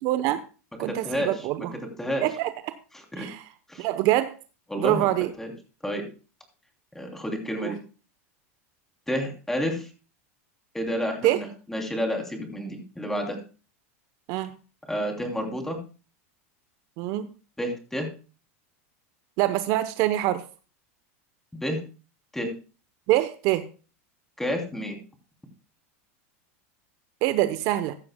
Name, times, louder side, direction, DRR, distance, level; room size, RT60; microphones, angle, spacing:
voice 1, 0.0-0.4 0.8-1.7 2.2-2.5 3.2-3.4 3.8-4.4 4.8-5.3 7.6-7.7 11.2-11.4 14.3-14.5 17.0-17.3 19.4-20.4 23.1-23.7 27.2-28.0, right 15 dB, 55° right, 12 dB, 0.8 m, -24 dB
voice 2, 0.8-1.7 2.0-2.2 2.9-3.3 3.7-3.9 4.7-5.1 5.4-5.5 5.8-6.1 6.9-7.8 9.1-9.9 10.7-13.4 14.9-15.8 17.6-18.1 21.5-21.8 22.3-22.5 24.4-25.0, equal, 5° left, 3 dB, 2.9 m, -30 dB
15.0 x 12.0 x 2.2 m, 0.34 s
supercardioid pair, 120°, 7 cm